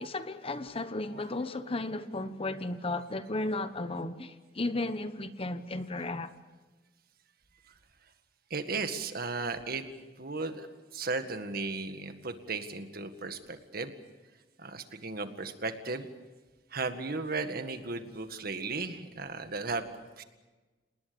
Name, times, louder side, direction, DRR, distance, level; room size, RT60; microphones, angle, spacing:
voice 1, 0.0-6.3, left 2 dB, 35° left, 1.1 m, -34 dB
voice 2, 8.5-9.8 10.2-10.7 10.9-13.9 14.6-16.1 16.7-19.9 20.2-20.3, right 3 dB, 55° right, 1.9 m, -35 dB
28.5 x 19.5 x 7.0 m
head